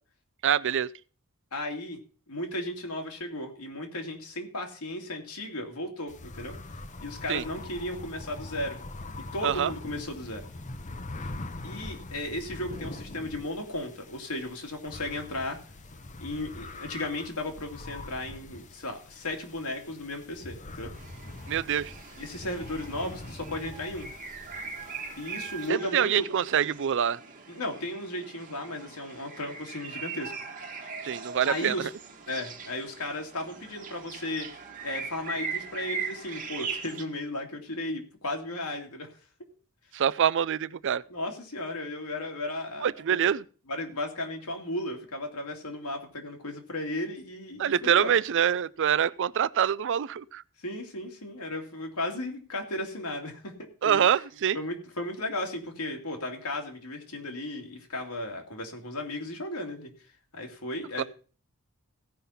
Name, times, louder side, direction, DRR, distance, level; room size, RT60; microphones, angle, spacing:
voice 1, 0.4-0.9 7.3-7.4 9.4-9.7 21.5-21.9 25.7-27.2 31.0-31.9 39.9-41.0 42.8-43.4 47.6-50.4 53.8-54.6 61.0-61.1, right 9 dB, 55° right, 0.4 m, -25 dB
voice 2, 1.5-2.0 2.3-6.5 7.0-8.8 9.3-10.5 11.6-15.6 16.2-20.9 22.2-24.1 25.2-26.2 27.5-30.3 31.4-31.9 32.3-39.1 41.1-43.3 43.7-48.1 50.6-54.0 54.5-59.9 60.3-61.0, left 1 dB, 85° left, 2.4 m, -35 dB
sound 1, 6.1-25.7, left 2 dB, 35° left, 0.8 m, -43 dB
sound 2, 20.9-37.0, right 5 dB, 40° right, 1.4 m, -40 dB
16.5 x 5.5 x 5.7 m
head